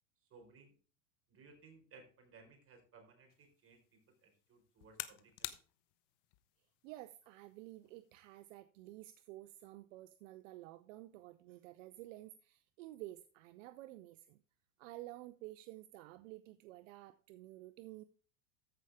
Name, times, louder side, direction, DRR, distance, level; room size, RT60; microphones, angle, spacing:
voice 1, 0.3-0.7 1.3-5.5, right 4 dB, 35° right, 4.5 m, -61 dB
sound 1, 3.3-8.5, left 17 dB, 60° left, 1.2 m, -52 dB
voice 2, 6.8-14.4 14.8-18.0, right 16 dB, 65° right, 0.8 m, -52 dB
14.5 x 5.7 x 3.6 m
supercardioid pair, 110°, 40 cm